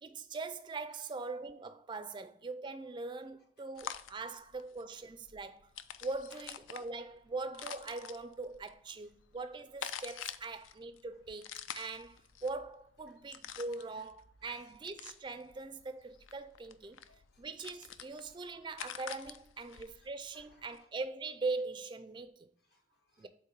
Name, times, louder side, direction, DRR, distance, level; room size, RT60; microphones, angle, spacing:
voice 1, 0.0-5.7 6.0-17.0 17.4-22.5 23.2-23.3, right 3 dB, 25° right, 0.3 m, -41 dB
voice 2, 3.4-3.9 4.2-4.4 5.0-5.1 6.3-6.5 6.9-7.0 9.0-9.1 11.1-11.2 13.1-13.4 13.7-14.1 14.4-14.7 16.8-17.5 18.0-18.3 19.6-20.9 22.6-23.3, left 2 dB, 55° left, 0.9 m, -67 dB
sound 1, 3.7-20.8, left 9 dB, 85° left, 0.4 m, -48 dB
7.8 x 3.0 x 4.5 m
head